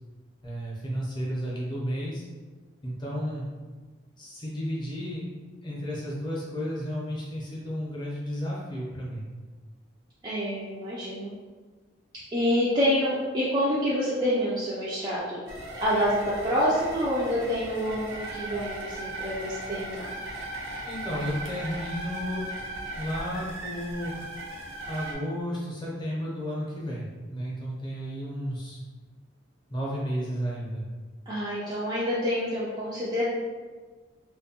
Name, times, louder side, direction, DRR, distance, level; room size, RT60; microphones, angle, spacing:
voice 1, 0.4-2.2 2.8-3.5 4.2-5.3 5.6-9.3 20.9-22.5 22.9-24.3 24.9-28.8 29.7-30.8, equal, 25° left, -5 dB, 0.6 m, -33 dB
voice 2, 10.2-11.3 12.3-15.4 15.8-20.1 31.3-33.3, equal, 20° right, -8 dB, 0.3 m, -27 dB
sound 1, 15.5-25.1, right 1 dB, 75° right, 0.6 m, -37 dB
2.6 x 2.2 x 2.8 m, 1.4 s
head